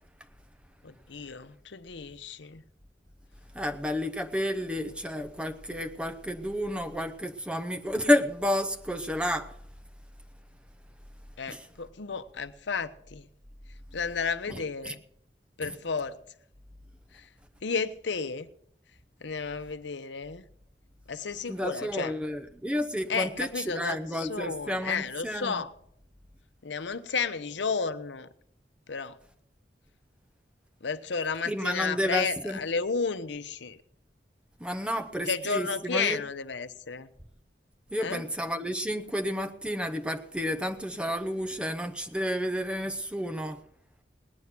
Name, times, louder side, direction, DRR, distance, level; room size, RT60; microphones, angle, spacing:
voice 1, 0.8-2.6 11.4-13.3 13.9-15.0 15.6-16.2 17.1-17.3 17.6-18.5 19.2-20.4 21.1-22.1 23.1-25.7 26.6-28.3 28.9-29.2 30.8-33.8 35.3-37.1 38.0-38.2, left 5 dB, 85° left, 0.8 m, -32 dB
voice 2, 3.5-9.5 11.5-11.6 14.5-14.6 14.8-14.9 15.6-15.7 21.5-25.6 31.5-32.6 34.6-36.2 37.9-43.6, equal, 5° right, 0.8 m, -30 dB
19.0 x 9.6 x 6.0 m
head